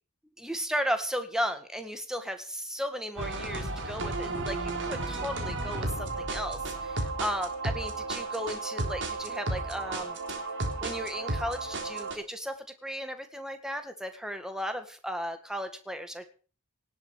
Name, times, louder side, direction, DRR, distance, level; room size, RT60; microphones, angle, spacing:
voice 1, 0.4-10.2 10.8-16.3, equal, 5° right, 8 dB, 1.7 m, -35 dB
sound 1, 3.2-12.2, right 2 dB, 55° right, 3.5 m, -33 dB
18.0 x 8.0 x 6.9 m, 0.40 s
head